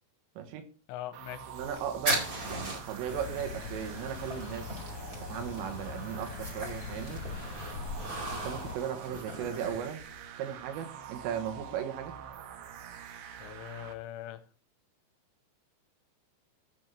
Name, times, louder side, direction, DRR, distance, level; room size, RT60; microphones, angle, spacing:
voice 1, 0.9-1.5 13.4-14.5, left 13 dB, 90° left, 11 dB, 3.4 m, -41 dB
sound 1, 1.1-13.9, right 8 dB, 70° right, 2.7 m, -46 dB
voice 2, 1.5-2.2 2.5-4.8 5.3-7.2 8.3-10.0 10.4-12.1, right 9 dB, 90° right, 7 dB, 3.9 m, -36 dB
sound 2, 1.6-10.2, right 1 dB, 30° right, 1.6 m, -39 dB
sound 3, 3.1-8.8, left 5 dB, 65° left, 2.0 m, -42 dB
15.0 x 5.4 x 4.4 m, 0.39 s
omnidirectional pair, 5.7 m